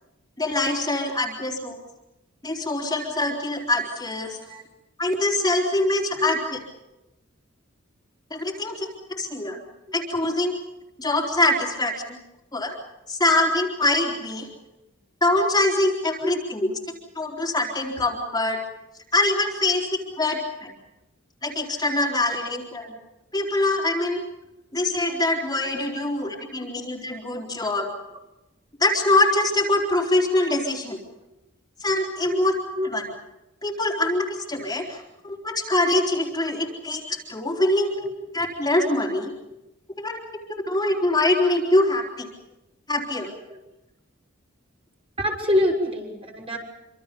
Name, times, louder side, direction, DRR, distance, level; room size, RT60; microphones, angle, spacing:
voice 1, 0.4-1.8 2.4-4.4 5.0-6.6 8.3-9.6 9.9-10.6 11.0-12.2 12.5-12.7 13.1-14.5 15.2-16.7 17.2-18.6 19.1-20.7 21.4-22.9 23.3-24.2 24.7-27.9 28.8-31.0 31.8-32.5 32.9-33.0 33.6-38.1 38.3-39.3 40.0-42.3 42.9-43.3, left 2 dB, 20° left, -1 dB, 4.0 m, -24 dB
voice 2, 45.2-46.6, left 1 dB, 30° right, 0 dB, 6.5 m, -26 dB
27.0 x 26.0 x 5.4 m, 0.92 s
head